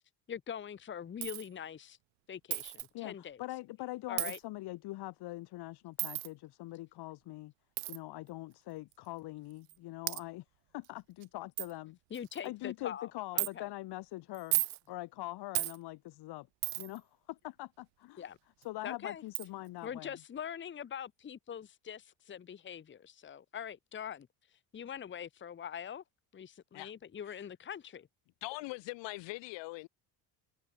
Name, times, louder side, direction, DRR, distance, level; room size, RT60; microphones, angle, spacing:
voice 1, 0.3-2.0 2.3-3.4 4.1-4.4 12.1-13.7 18.2-18.4 18.8-19.2 19.8-24.3 24.7-26.0 26.3-28.0, left 8 dB, 25° left, 1.4 m, -43 dB
Coin (dropping), 1.2-1.5 2.5-2.9 4.2-4.4 6.0-6.3 7.8-8.0 8.9-9.0 9.7-9.8 10.1-10.2 10.8-10.9 11.2-11.3 11.6-11.7 12.1-12.5 13.4-13.5 14.3-14.8 15.5-15.8 16.6-17.0 18.6-18.7 19.3-19.5, right 27 dB, 85° right, 0.8 m, -34 dB
voice 2, 2.9-7.5 7.9-10.4 10.7-12.0 12.4-14.6 14.9-16.5 16.7-18.3 18.6-20.2, left 18 dB, 65° left, 2.8 m, -43 dB
voice 3, 28.4-29.9, left 23 dB, 85° left, 6.4 m, -41 dB
cardioid pair, 150°, 42 cm